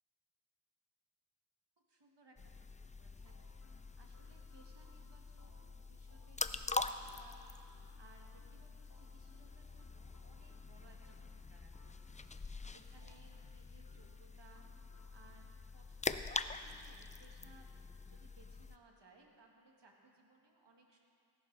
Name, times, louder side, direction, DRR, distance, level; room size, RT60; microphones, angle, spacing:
voice 1, 1.9-3.4 4.0-5.6 5.9-7.4 8.0-11.9 12.7-14.6 15.1-17.7 18.1-21.0, right 3 dB, 75° right, 0 dB, 1.9 m, -65 dB
sound 1, 2.4-18.8, left 3 dB, 20° left, 0.4 m, -45 dB
sound 2, 3.1-15.5, left 1 dB, 50° left, 2.1 m, -69 dB
17.0 x 11.5 x 4.0 m, 2.4 s
cardioid pair, 40°, 43 cm